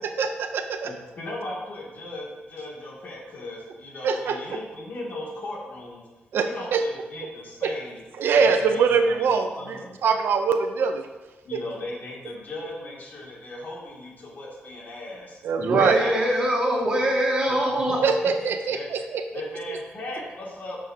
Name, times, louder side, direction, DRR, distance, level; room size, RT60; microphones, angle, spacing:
voice 1, 0.0-0.9 4.0-4.6 6.3-6.8 7.6-7.7 8.2-11.1 11.5-11.6 15.4-16.0 18.0-19.2 19.7-19.8, right 5 dB, 80° right, 7 dB, 0.6 m, -23 dB
voice 2, 0.8-6.0 6.4-10.0 11.4-15.4 16.0-16.5 16.9-17.0 17.5-17.6 18.2-18.9 19.3-20.8, left 2 dB, 55° left, -4 dB, 2.4 m, -37 dB
voice 3, 15.6-18.0, right 1 dB, 25° right, -5 dB, 2.2 m, -23 dB
9.9 x 6.2 x 2.8 m, 1.2 s
wide cardioid pair, 135°, 4 cm